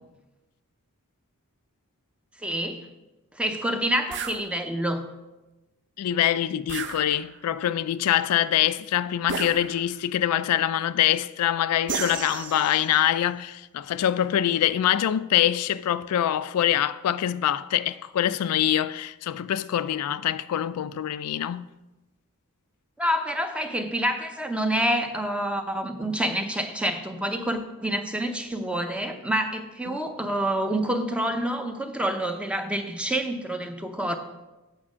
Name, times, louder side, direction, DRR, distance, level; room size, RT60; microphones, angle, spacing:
voice 1, 2.4-2.9 3.3-5.1 23.0-34.2, right 1 dB, 5° right, 0.7 m, -27 dB
sound 1, 4.1-4.4 6.7-7.5 9.3-10.1 11.9-13.0, right 6 dB, 55° right, 0.6 m, -33 dB
voice 2, 6.0-21.7 29.9-30.0, left 11 dB, 90° left, 0.3 m, -24 dB
8.5 x 5.3 x 6.1 m
head